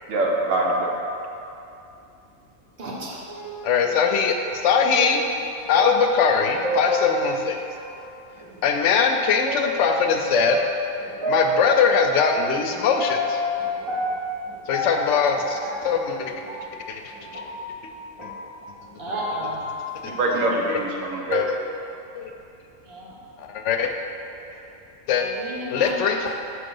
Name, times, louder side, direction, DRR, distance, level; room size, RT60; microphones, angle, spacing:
voice 1, 0.1-0.9 20.0-21.4, right 2 dB, 90° right, -1 dB, 1.2 m, -23 dB
voice 2, 2.8-3.2 19.0-19.6 22.9-23.1 24.5-24.6 25.1-26.1, right 1 dB, 50° right, -5 dB, 1.3 m, -33 dB
sound 1, 3.3-7.9 8.4-8.5 9.4-18.5 18.9-20.8, left 1 dB, 25° right, 1.1 m, -30 dB
voice 3, 3.6-4.3 4.6-5.2 5.7-7.6 8.6-10.6 11.3-13.4 14.7-16.3 16.9-17.0 20.0-20.1 20.7-20.8 21.3-21.5 22.1-22.3 23.4-23.9 25.1-25.3 25.7-26.3, left 6 dB, 70° left, 4 dB, 0.9 m, -21 dB
6.5 x 3.8 x 5.4 m, 2.7 s
omnidirectional pair, 1.3 m